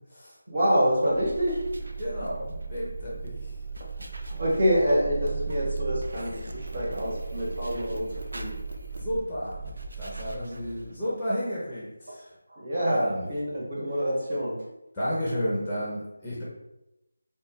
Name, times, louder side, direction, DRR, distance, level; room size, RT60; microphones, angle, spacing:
voice 1, 0.5-1.6 4.2-8.0 8.3-8.5 12.5-14.6, equal, 35° right, -5 dB, 1.0 m, -26 dB
sound 1, 1.1-11.0, right 4 dB, 65° right, 0.4 m, -37 dB
voice 2, 2.0-3.5 9.0-9.6 10.0-12.3 12.9-13.3 14.9-16.4, equal, 10° left, -7 dB, 0.5 m, -32 dB
2.4 x 2.1 x 3.5 m, 0.92 s
figure-of-eight pair, 175°, 0 cm